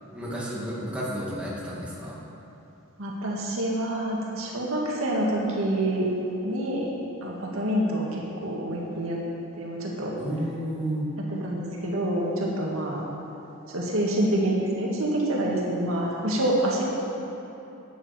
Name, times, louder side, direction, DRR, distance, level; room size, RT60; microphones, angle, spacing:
voice 1, 0.1-2.2 10.1-11.1, right 1 dB, 5° right, -7 dB, 2.5 m, -31 dB
voice 2, 3.0-6.1 6.4-6.9 7.2-9.2 9.5-10.2 11.3-13.1 13.7-16.8, right 1 dB, 85° right, -3 dB, 2.1 m, -27 dB
13.5 x 9.5 x 4.5 m, 2.9 s
head